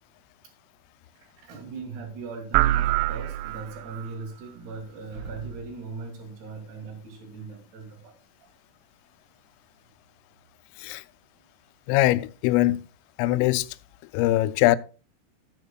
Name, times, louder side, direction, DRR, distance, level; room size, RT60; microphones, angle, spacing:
voice 1, 1.2-8.1 8.4-8.5, right 4 dB, 60° right, 4.3 m, -39 dB
sound 1, 2.5-4.1, right 15 dB, 90° right, 3.2 m, -24 dB
voice 2, 11.9-12.8 13.2-13.7 14.1-14.8, left 16 dB, 85° left, 3.1 m, -22 dB
13.5 x 9.3 x 2.3 m
omnidirectional pair, 5.7 m